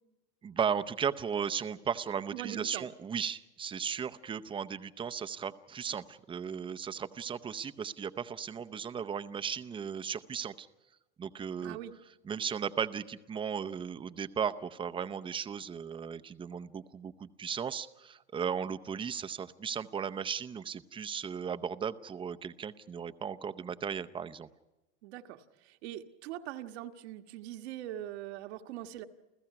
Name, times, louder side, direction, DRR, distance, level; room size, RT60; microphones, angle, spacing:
voice 1, 0.4-10.7 11.2-11.8 12.2-24.5, right 7 dB, 15° right, 10 dB, 0.6 m, -36 dB
voice 2, 2.3-2.9 11.6-11.9 25.0-29.1, right 12 dB, 75° right, 6 dB, 1.6 m, -42 dB
29.5 x 15.5 x 5.9 m, 1.1 s
supercardioid pair, 140°, 33 cm